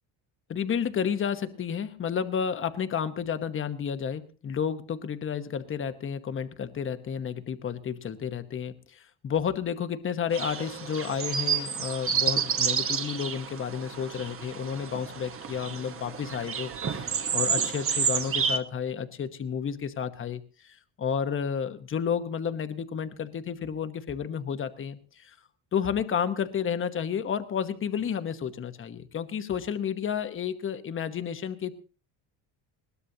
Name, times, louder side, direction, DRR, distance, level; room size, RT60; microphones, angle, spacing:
voice 1, 0.5-25.3 25.7-31.7, left 7 dB, 25° left, 10 dB, 1.1 m, -31 dB
sound 1, 10.3-18.6, right 6 dB, 25° right, 1.2 m, -30 dB
21.0 x 18.0 x 2.8 m, 0.35 s
cardioid pair, 155°, 47 cm